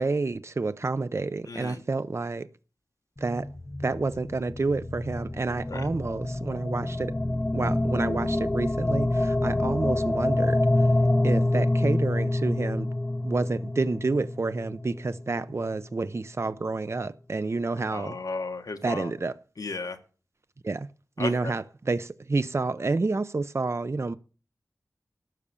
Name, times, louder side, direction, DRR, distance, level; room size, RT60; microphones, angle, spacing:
voice 1, 0.0-2.5 3.2-3.5 3.8-7.1 7.5-10.6 11.2-12.9 13.2-18.2 18.8-19.4 20.6-20.9 21.2-24.1, right 3 dB, 45° right, 0.6 m, -29 dB
voice 2, 1.5-1.8 5.7-5.9 17.9-19.1 19.6-20.0 21.2-21.5, left 3 dB, 75° left, 1.6 m, -34 dB
sound 1, 3.2-15.4, left 1 dB, 20° left, 0.5 m, -27 dB
12.5 x 6.5 x 7.0 m
wide cardioid pair, 80°, 6 cm